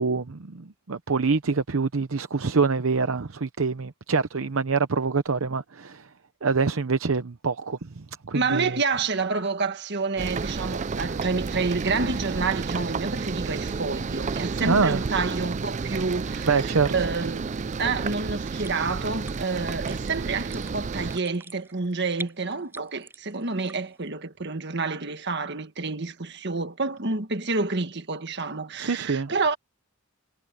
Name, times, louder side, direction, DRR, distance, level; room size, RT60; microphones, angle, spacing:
voice 1, 0.0-6.1 6.4-8.8 14.6-15.0 16.4-16.9 28.8-29.3, right 4 dB, 70° right, 0.8 m, -25 dB
voice 2, 8.3-29.6, right 4 dB, 50° right, 1.6 m, -29 dB
sound 1, 10.2-21.2, right 4 dB, 35° right, 0.4 m, -31 dB
sound 2, 18.5-24.1, right 3 dB, 10° right, 6.1 m, -45 dB
head